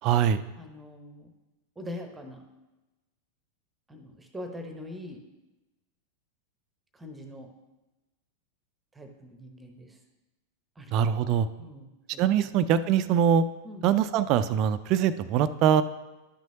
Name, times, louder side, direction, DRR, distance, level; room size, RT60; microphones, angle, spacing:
voice 1, 0.0-0.4 10.9-11.5 12.2-13.4 13.8-15.8, right 8 dB, 40° right, 13 dB, 0.4 m, -23 dB
voice 2, 0.6-1.3 1.8-2.4 3.9-5.2 6.9-7.5 8.9-10.0 10.8-10.9 11.6-12.5 13.6-13.8, left 1 dB, 10° right, 5 dB, 0.9 m, -43 dB
11.5 x 6.1 x 2.8 m, 1.1 s
figure-of-eight pair, 90°, 0 cm